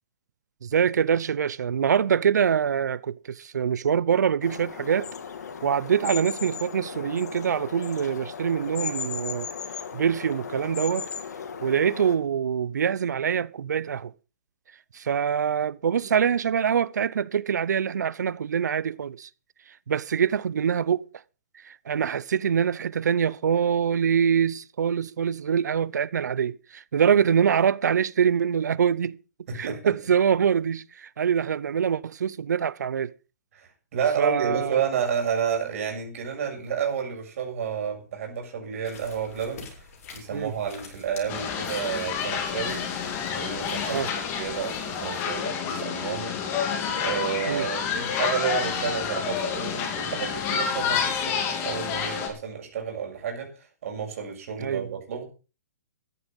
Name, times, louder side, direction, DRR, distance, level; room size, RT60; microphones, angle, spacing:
voice 1, 0.6-5.1 5.6-9.5 9.9-11.1 11.6-14.1 14.9-19.3 19.9-21.0 21.6-29.2 29.5-33.1 34.2-34.9 40.3-40.5 43.9-44.1 47.5-47.6 54.6-54.9, right 7 dB, 85° right, 0.7 m, -24 dB
sound 1, 4.4-12.2, left 6 dB, 75° left, 2.9 m, -36 dB
voice 2, 29.5-29.9 33.5-39.8 40.1-42.8 43.3-55.2, right 7 dB, 55° right, 6.9 m, -31 dB
sound 2, 38.8-45.1, left 5 dB, 55° left, 7.2 m, -47 dB
sound 3, 41.3-52.3, left 7 dB, 25° left, 3.2 m, -29 dB
14.0 x 11.0 x 5.4 m
hypercardioid pair, 160°, 9 cm